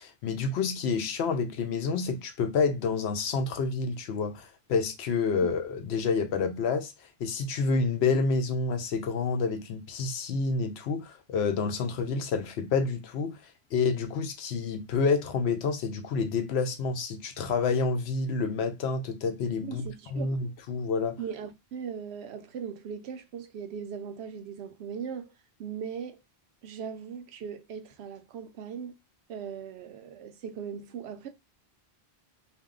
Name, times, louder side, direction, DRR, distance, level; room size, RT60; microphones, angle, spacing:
voice 1, 0.0-6.9 7.2-13.4 13.7-21.2, left 4 dB, 85° left, 0.9 m, -28 dB
voice 2, 19.6-20.4 21.2-25.3 25.6-26.2 26.6-28.9 29.3-31.3, right 7 dB, 85° right, 0.8 m, -39 dB
2.6 x 2.1 x 3.6 m
omnidirectional pair, 1.1 m